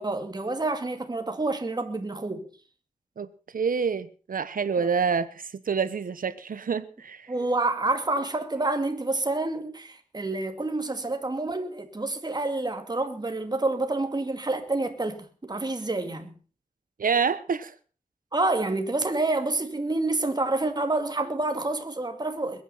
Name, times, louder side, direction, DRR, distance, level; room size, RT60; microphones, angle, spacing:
voice 1, 0.0-2.5 7.3-16.4 18.3-22.6, right 2 dB, 30° right, 2.4 m, -28 dB
voice 2, 3.5-7.3 17.0-17.7, right 6 dB, 75° right, 1.2 m, -27 dB
21.5 x 9.4 x 5.7 m
wide cardioid pair, 95°, 14 cm